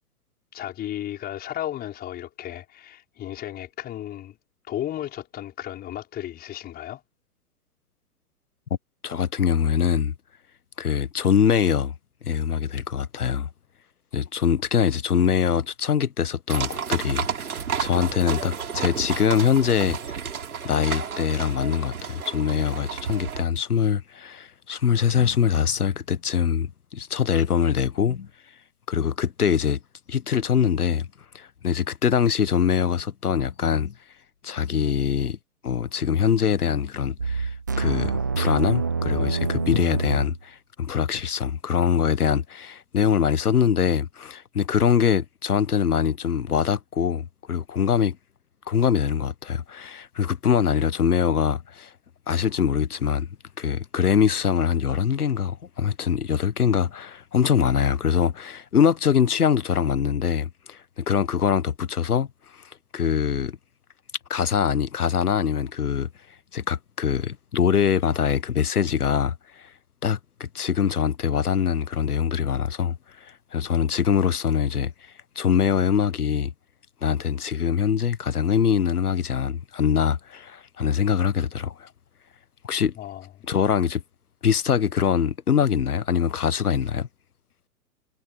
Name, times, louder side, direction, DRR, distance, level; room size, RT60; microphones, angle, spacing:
voice 1, 0.5-4.4 4.7-7.0 83.0-83.3, left 12 dB, 20° left, 5.4 m, -34 dB
voice 2, 9.0-10.1 10.8-11.9 12.2-13.5 14.1-17.2 17.8-20.0 20.6-28.3 28.9-29.8 30.1-31.1 31.3-33.9 34.4-35.4 35.6-37.5 37.8-48.2 48.7-51.9 52.3-53.3 53.6-62.3 62.9-63.6 64.3-66.1 66.5-69.3 70.0-72.9 73.5-74.9 75.4-76.5 77.0-81.9 82.6-82.9 83.5-84.0 84.4-87.1, left 7 dB, 75° left, 1.3 m, -23 dB
sound 1, 16.5-23.4, right 7 dB, 70° right, 4.2 m, -31 dB
sound 2, 37.2-40.4, right 5 dB, 15° right, 0.4 m, -26 dB
figure-of-eight pair, 120°, 45 cm